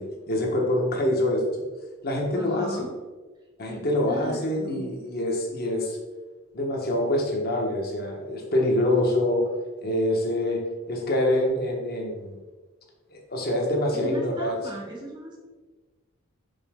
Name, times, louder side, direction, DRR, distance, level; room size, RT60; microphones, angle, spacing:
voice 1, 0.0-1.6 2.0-2.8 3.6-6.0 6.5-9.5 9.8-12.4 13.1-14.5, left 1 dB, 45° left, 0 dB, 1.2 m, -25 dB
voice 2, 2.3-2.9 3.7-4.9 13.9-15.4, right 2 dB, 25° right, -1 dB, 0.8 m, -38 dB
5.4 x 5.0 x 3.6 m, 1.3 s
head